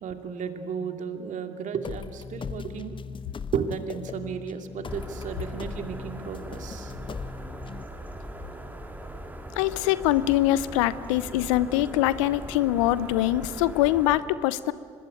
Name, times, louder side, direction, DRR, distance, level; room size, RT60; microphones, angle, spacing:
voice 1, 0.0-3.0 3.5-6.9, right 6 dB, 50° right, 6 dB, 2.5 m, -33 dB
sound 1, 1.8-7.8, left 6 dB, 30° left, 0.9 m, -39 dB
sound 2, 4.9-14.2, right 1 dB, 10° right, 3.8 m, -40 dB
voice 2, 9.6-14.7, left 15 dB, 75° left, 17 dB, 0.8 m, -23 dB
25.0 x 21.5 x 9.4 m, 2.2 s
hypercardioid pair, 55°, 16 cm